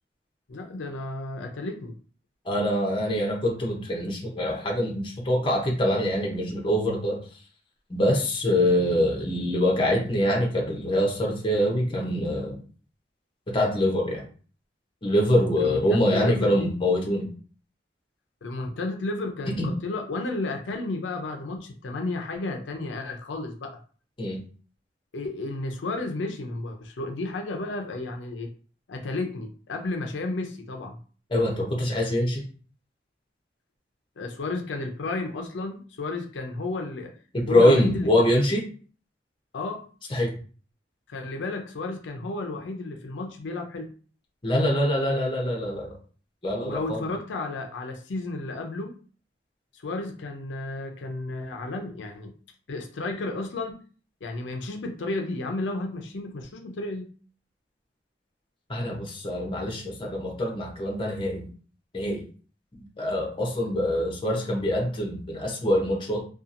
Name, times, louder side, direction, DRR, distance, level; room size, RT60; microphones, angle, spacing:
voice 1, 0.5-2.0 15.6-16.7 18.4-23.7 25.1-28.5 28.9-31.0 34.2-37.1 37.5-38.1 39.5-39.8 41.1-43.9 46.6-48.9 49.7-52.3 52.7-53.8 54.2-57.1, left 2 dB, 85° left, 3 dB, 0.5 m, -32 dB
voice 2, 2.4-7.2 7.9-12.6 13.5-14.3 15.0-17.3 19.5-19.7 24.2-24.4 31.3-32.4 37.3-38.6 40.1-40.3 44.4-46.0 46.4-47.0 58.7-61.5 61.9-62.2 62.8-66.2, left 1 dB, 25° left, 0 dB, 0.6 m, -24 dB
2.7 x 2.3 x 2.5 m, 0.40 s
head